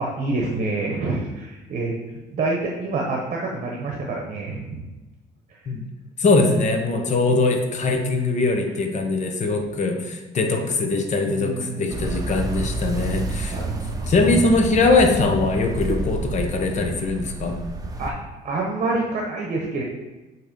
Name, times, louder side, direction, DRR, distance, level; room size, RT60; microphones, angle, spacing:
voice 1, 0.0-1.9 2.3-4.9 7.9-8.0 11.2-11.9 13.5-14.0 18.0-18.1 18.4-19.8, right 3 dB, 45° right, 0 dB, 1.0 m, -27 dB
voice 2, 6.2-13.6 14.1-17.6, left 3 dB, 45° left, 4 dB, 1.1 m, -21 dB
sound 1, 11.9-18.1, right 2 dB, 20° right, 0.8 m, -29 dB
7.8 x 3.2 x 5.2 m, 1.2 s
cardioid pair, 110°, 17 cm